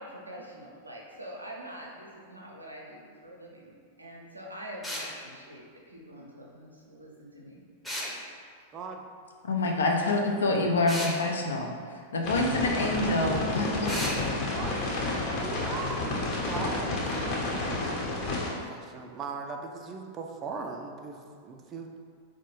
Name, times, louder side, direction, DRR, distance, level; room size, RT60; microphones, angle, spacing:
voice 1, 0.0-7.7, right 1 dB, 90° right, -2 dB, 0.5 m, -45 dB
sound 1, 4.8-5.1 7.8-8.1 10.9-11.2 13.9-14.2, left 1 dB, 5° left, 0.6 m, -33 dB
voice 2, 8.7-9.1 14.5-17.2 17.4-17.8 18.5-22.0, right 4 dB, 30° right, 3 dB, 0.3 m, -39 dB
voice 3, 9.4-11.7 12.1-13.9, left 2 dB, 75° left, 1 dB, 0.4 m, -26 dB
sound 2, 12.2-18.5, left 2 dB, 45° left, 0.9 m, -30 dB
4.3 x 2.1 x 3.0 m, 2.1 s
figure-of-eight pair, 90°, 0 cm